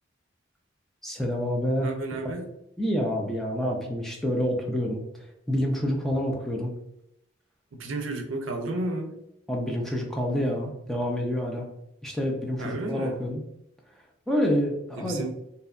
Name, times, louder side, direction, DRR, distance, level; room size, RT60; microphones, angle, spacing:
voice 1, 1.0-1.9 2.8-5.0 5.5-6.7 9.5-11.7 12.0-13.4 14.3-15.2, equal, ahead, -1 dB, 0.3 m, -27 dB
voice 2, 1.8-2.5 7.7-9.2 12.6-13.2 15.0-15.3, right 2 dB, 75° right, 4 dB, 0.4 m, -32 dB
2.6 x 2.1 x 2.4 m, 0.83 s
head